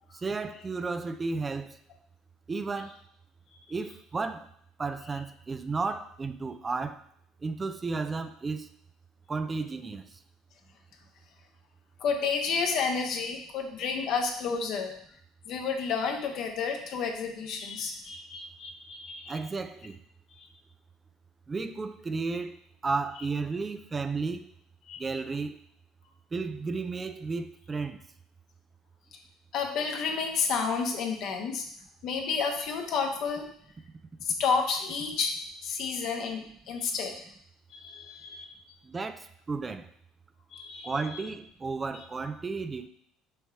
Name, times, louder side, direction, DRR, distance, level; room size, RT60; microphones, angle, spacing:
voice 1, 0.1-1.8 2.5-2.9 3.7-4.5 4.8-7.0 7.4-8.7 9.3-10.0 19.3-20.0 21.5-22.5 22.8-24.4 25.0-25.6 26.3-28.0 38.9-39.9 40.8-42.9, right 4 dB, 25° right, 9 dB, 0.5 m, -33 dB
voice 2, 12.0-14.9 15.5-19.4 24.9-25.0 29.5-31.6 32.0-33.5 34.2-35.3 35.6-37.1 37.7-38.5 40.5-40.9, left 5 dB, 60° left, 3 dB, 1.1 m, -30 dB
6.3 x 3.1 x 4.8 m, 0.66 s
hypercardioid pair, 65°, 0 cm